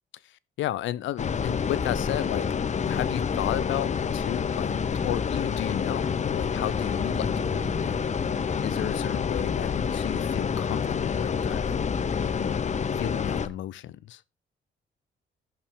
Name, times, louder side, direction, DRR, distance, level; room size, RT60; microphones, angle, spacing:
voice 1, 0.2-2.5 2.8-8.0 8.4-12.5 12.9-14.2, left 13 dB, 75° left, 0.6 m, -34 dB
sound 1, 1.2-13.5, left 6 dB, 35° left, 0.7 m, -28 dB
sound 2, 5.8-9.7, left 2 dB, ahead, 1.8 m, -42 dB
15.0 x 5.7 x 3.5 m
cardioid pair, 90°, 20 cm